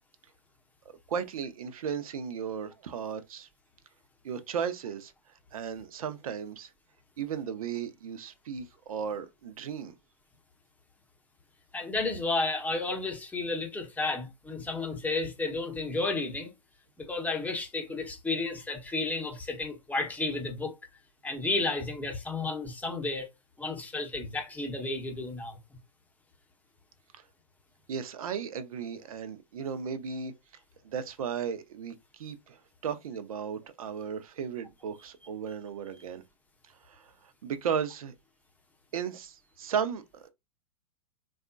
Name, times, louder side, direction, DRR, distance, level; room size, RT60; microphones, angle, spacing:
voice 1, 1.1-3.5 4.2-5.1 5.5-6.7 7.2-9.9 27.9-30.3 30.8-36.2 36.9-38.1 38.9-40.3, right 7 dB, 70° right, 0.7 m, -35 dB
voice 2, 11.7-16.5 17.0-20.7 21.2-23.3 23.6-25.6, left 3 dB, 10° left, 0.8 m, -32 dB
3.5 x 2.4 x 2.4 m
hypercardioid pair, 110°, 19 cm